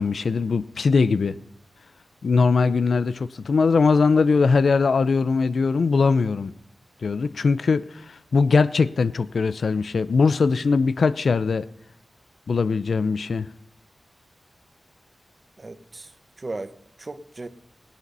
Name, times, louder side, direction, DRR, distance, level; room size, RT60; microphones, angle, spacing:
voice 1, 0.0-1.4 2.2-6.5 7.0-11.7 12.5-13.5, left 4 dB, 70° left, 15 dB, 0.5 m, -21 dB
voice 2, 15.6-16.1 16.4-17.5, right 2 dB, 35° right, 12 dB, 0.9 m, -36 dB
17.0 x 10.0 x 5.4 m, 0.73 s
wide cardioid pair, 120°, 0 cm